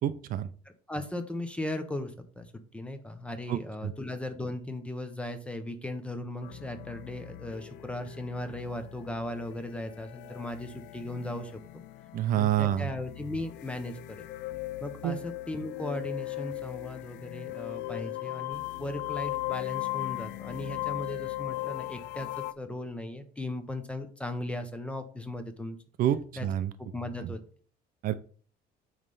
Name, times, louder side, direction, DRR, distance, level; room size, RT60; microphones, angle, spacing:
voice 1, 0.0-0.5 3.5-3.9 12.1-12.9 15.0-15.2 26.0-26.7 27.2-27.3 28.0-28.1, right 12 dB, 55° right, 12 dB, 0.5 m, -28 dB
voice 2, 0.6-11.5 12.4-14.3 14.8-25.8 26.4-26.5 26.8-27.4, left 1 dB, 5° left, 8 dB, 0.7 m, -37 dB
sound 1, 6.4-22.5, left 18 dB, 90° left, 0.5 m, -38 dB
8.8 x 3.2 x 5.4 m, 0.43 s
cardioid pair, 175°, 18 cm